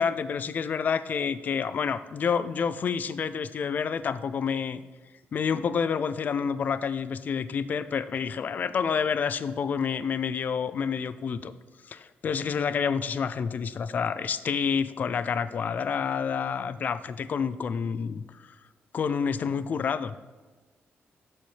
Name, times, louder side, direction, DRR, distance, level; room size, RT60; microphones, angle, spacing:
voice 1, 0.0-4.8 5.3-11.5 11.9-18.2 18.9-20.1, left 6 dB, 40° left, 14 dB, 0.3 m, -28 dB
12.5 x 4.3 x 3.2 m, 1.3 s
wide cardioid pair, 170°, 4 cm